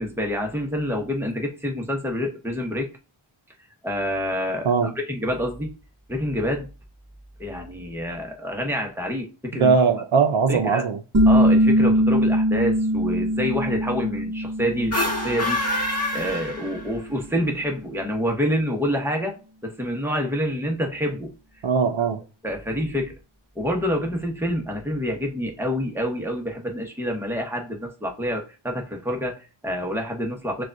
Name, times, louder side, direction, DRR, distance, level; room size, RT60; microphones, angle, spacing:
voice 1, 0.0-2.9 3.8-4.7 5.1-5.7 6.1-6.7 7.4-9.7 10.5-10.8 11.3-15.8 16.1-19.3 19.6-21.3 22.4-23.1 23.6-30.6, equal, 5° right, 0.9 m, -27 dB
voice 2, 9.5-11.0 21.6-22.2, right 5 dB, 70° right, 0.6 m, -20 dB
sound 1, 11.1-16.5, equal, 30° right, 0.7 m, -21 dB
sound 2, 14.8-17.1, left 1 dB, 30° left, 1.5 m, -26 dB
6.1 x 2.4 x 2.5 m
wide cardioid pair, 60°, 49 cm